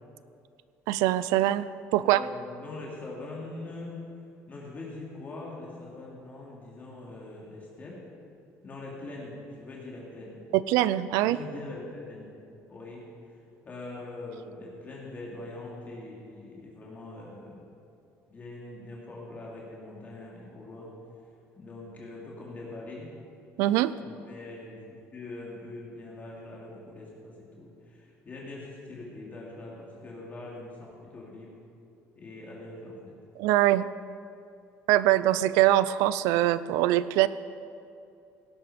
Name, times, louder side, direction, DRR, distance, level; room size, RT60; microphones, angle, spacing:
voice 1, 0.9-1.7 1.9-2.2 10.5-11.4 23.6-23.9 33.4-33.9 34.9-37.3, right 15 dB, 85° right, 16 dB, 0.5 m, -23 dB
voice 2, 2.0-4.0 4.5-8.0 8.6-10.4 11.2-12.3 12.7-13.1 13.6-17.6 18.3-20.9 21.5-23.1 24.0-31.5 32.1-33.2, left 2 dB, 30° left, -4 dB, 3.0 m, -42 dB
17.0 x 11.5 x 5.2 m, 2.5 s
cardioid pair, 120°, 6 cm